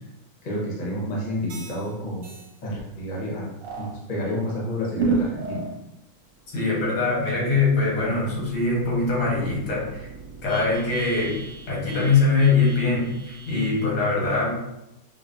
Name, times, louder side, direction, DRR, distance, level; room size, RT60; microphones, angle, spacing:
voice 1, 0.4-2.3 2.6-3.5 3.8-5.7, equal, 35° left, -4 dB, 0.7 m, -29 dB
sound 1, 1.5-1.9 2.2-2.5 3.6-3.9 4.9-5.8 6.3-13.8, right 4 dB, 65° right, 1.4 m, -33 dB
voice 2, 6.5-10.1 10.4-11.4 11.7-14.6, left 3 dB, 75° left, -4 dB, 2.1 m, -22 dB
5.8 x 2.1 x 2.6 m, 0.89 s
omnidirectional pair, 2.4 m